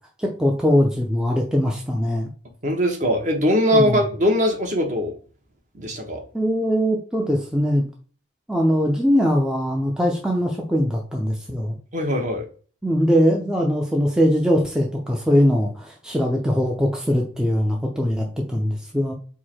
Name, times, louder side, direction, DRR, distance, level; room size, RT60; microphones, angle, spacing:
voice 1, 0.2-2.3 3.7-4.0 6.3-7.9 8.5-11.8 12.8-19.1, equal, 5° right, -1 dB, 0.5 m, -21 dB
voice 2, 2.6-5.1 5.7-6.2 11.9-12.5, equal, 40° right, 3 dB, 0.9 m, -21 dB
4.7 x 2.1 x 4.3 m, 0.40 s
head